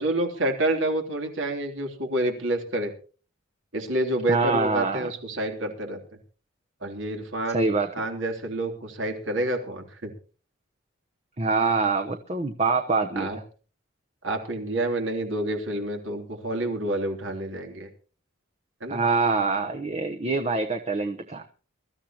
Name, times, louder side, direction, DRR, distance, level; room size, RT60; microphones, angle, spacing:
voice 1, 0.0-2.9 3.7-6.0 6.8-10.1 13.1-13.4 14.2-17.9 18.8-19.0, right 1 dB, 75° right, 3 dB, 3.3 m, -28 dB
voice 2, 4.3-5.1 7.5-7.9 11.4-13.3 18.9-21.4, right 4 dB, 35° right, 5 dB, 0.9 m, -25 dB
23.0 x 13.5 x 3.0 m, 0.38 s
head